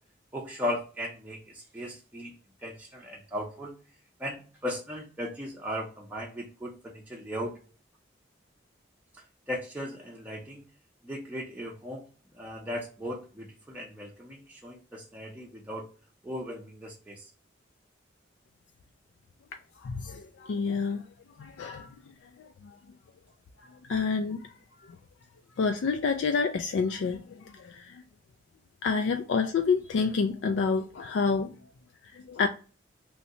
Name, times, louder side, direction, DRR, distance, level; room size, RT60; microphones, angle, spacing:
voice 1, 0.3-2.3 2.6-3.7 4.2-7.6 9.5-10.6 11.0-12.1 12.3-15.9 16.2-17.3, left 1 dB, 10° right, 0.5 m, -37 dB
voice 2, 19.8-21.0 21.4-21.9 22.4-22.8 23.6-24.5 25.6-28.0 28.8-31.5 32.1-32.5, left 5 dB, 85° left, 0.3 m, -28 dB
3.1 x 2.7 x 2.6 m
head